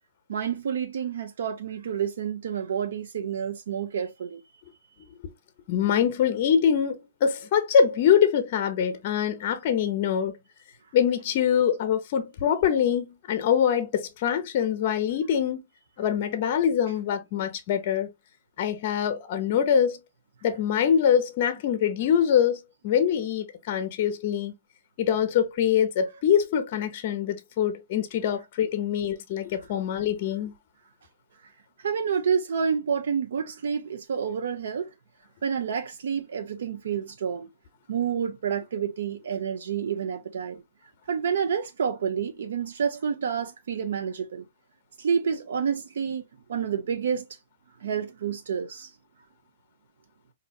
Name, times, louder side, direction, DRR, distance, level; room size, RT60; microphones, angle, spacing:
voice 1, 0.3-4.4 31.8-34.9 35.4-37.5 37.9-40.6 41.1-44.4 45.0-46.2 46.5-47.3 47.8-48.9, right 7 dB, 70° right, 0.5 m, -29 dB
voice 2, 5.7-10.3 10.9-15.6 16.0-18.1 18.6-20.0 20.4-24.5 25.0-30.5, left 8 dB, 40° left, 0.6 m, -24 dB
4.0 x 2.6 x 2.3 m
hypercardioid pair, 165°, 0 cm